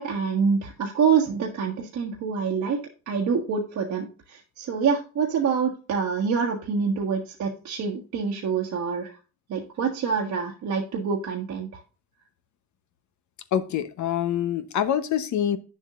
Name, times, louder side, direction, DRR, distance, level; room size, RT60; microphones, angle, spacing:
voice 1, 0.0-9.2 9.5-11.8, right 6 dB, 70° right, 1.5 m, -26 dB
voice 2, 13.5-15.6, left 10 dB, 70° left, 1.0 m, -25 dB
9.6 x 7.2 x 2.5 m
cardioid pair, 90°, 30 cm